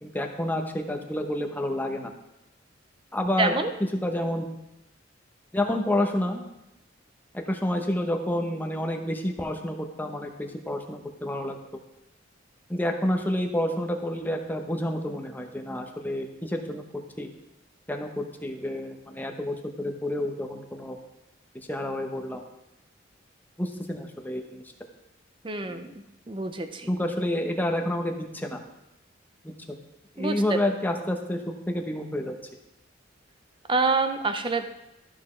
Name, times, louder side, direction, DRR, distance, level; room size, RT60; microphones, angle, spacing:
voice 1, 0.0-2.1 3.1-3.5 4.0-4.5 5.5-6.4 7.3-11.6 12.7-17.3 17.9-21.0 21.7-22.4 23.6-24.6 25.6-25.8 26.9-28.6 29.4-29.5 30.2-31.4 31.7-32.3, left 1 dB, 10° left, 3 dB, 0.8 m, -29 dB
voice 2, 3.4-3.7 25.4-25.9 26.3-26.9 30.2-30.6 33.7-34.7, right 3 dB, 25° right, 8 dB, 0.6 m, -26 dB
13.0 x 5.9 x 3.2 m, 0.89 s
head